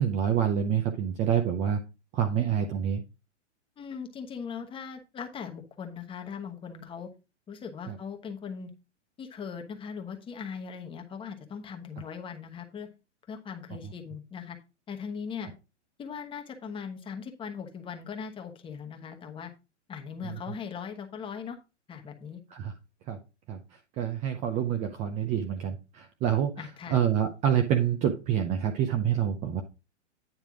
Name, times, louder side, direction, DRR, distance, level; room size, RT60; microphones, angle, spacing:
voice 1, 0.0-1.8 2.1-3.0 7.9-8.0 22.5-22.7 23.1-23.2 23.5-23.6 24.0-29.6, right 9 dB, 20° right, 6 dB, 0.6 m, -27 dB
voice 2, 3.8-7.1 7.5-8.7 9.2-12.9 13.3-14.6 14.9-15.5 16.0-19.5 19.9-21.6 21.9-22.4 26.6-27.0, left 6 dB, 15° left, 4 dB, 1.1 m, -39 dB
9.4 x 3.4 x 6.0 m, 0.28 s
hypercardioid pair, 140°, 36 cm